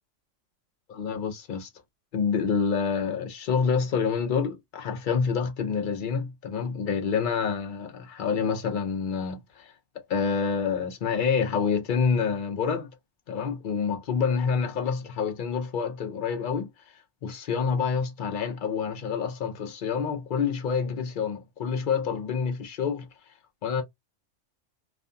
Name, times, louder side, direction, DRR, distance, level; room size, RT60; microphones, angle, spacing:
voice 1, 0.9-1.7 2.1-9.7 10.1-12.9 13.3-16.7 17.2-23.1 23.6-23.8, left 6 dB, 55° left, 0.6 m, -27 dB
2.5 x 2.3 x 2.5 m
omnidirectional pair, 1.3 m